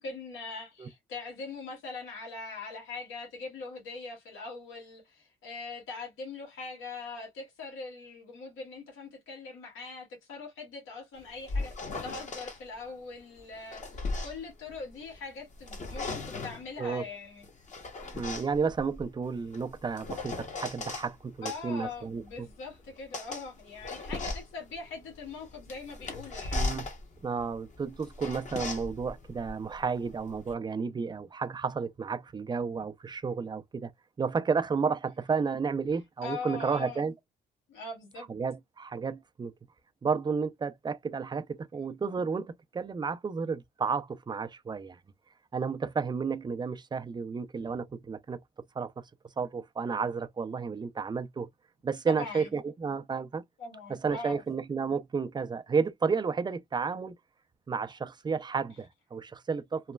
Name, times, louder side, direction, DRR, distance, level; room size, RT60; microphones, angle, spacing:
voice 1, 0.0-17.5 21.4-26.7 36.2-37.0 37.7-38.3 52.1-52.5 53.6-54.4, left 4 dB, 85° left, 1.6 m, -42 dB
sound 1, 11.2-12.6 13.4-15.2 15.5-16.7 17.4-21.1 21.4-30.5, left 3 dB, 35° left, 0.9 m, -38 dB
voice 2, 18.1-22.5 26.5-26.9 27.2-33.9 34.2-37.1 38.3-39.5 40.0-45.0 45.5-48.4 48.8-49.0 49.4-51.5 51.8-53.4 53.9-57.1 57.7-59.9, right 5 dB, 20° right, 0.4 m, -32 dB
3.1 x 2.1 x 2.2 m
cardioid pair, 90°, 20 cm